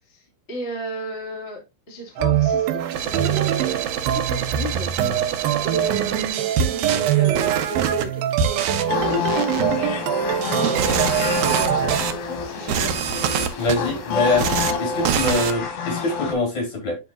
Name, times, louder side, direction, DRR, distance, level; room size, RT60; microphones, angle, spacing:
voice 1, 0.1-3.8 4.1-4.9 5.6-9.8 10.2-12.9, right 2 dB, 20° left, -1 dB, 1.9 m, -33 dB
sound 1, 2.2-12.0, right 11 dB, 90° right, 2.6 m, -24 dB
sound 2, 2.8-8.1 8.4-8.8 9.3-9.6 10.4-12.1 12.5-13.8 14.3-14.7 15.0-15.5, right 8 dB, 70° right, 1.8 m, -26 dB
sound 3, 8.9-16.3, left 4 dB, 75° left, 3.3 m, -27 dB
voice 2, 13.6-14.5 14.8-17.0, left 2 dB, 50° left, 0 dB, 5.3 m, -23 dB
11.5 x 4.5 x 2.5 m, 0.23 s
omnidirectional pair, 4.2 m